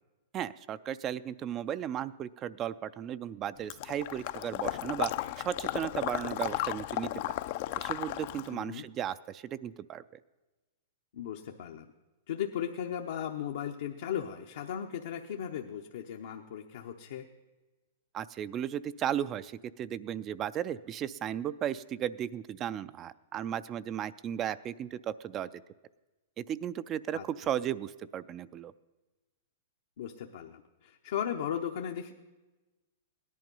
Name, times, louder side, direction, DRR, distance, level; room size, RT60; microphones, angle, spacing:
voice 1, 0.3-5.1 5.4-7.1 7.8-10.0 18.1-25.6 26.4-28.7, right 10 dB, 25° right, 15 dB, 0.3 m, -35 dB
Water / Liquid, 3.7-8.5, left 15 dB, 50° left, 0.4 m, -34 dB
voice 2, 8.5-8.9 11.1-11.9 12.3-17.3 27.1-27.2 30.0-32.1, left 9 dB, 70° left, 3 dB, 0.8 m, -36 dB
17.0 x 11.0 x 5.4 m, 1.2 s
hypercardioid pair, 140°, 0 cm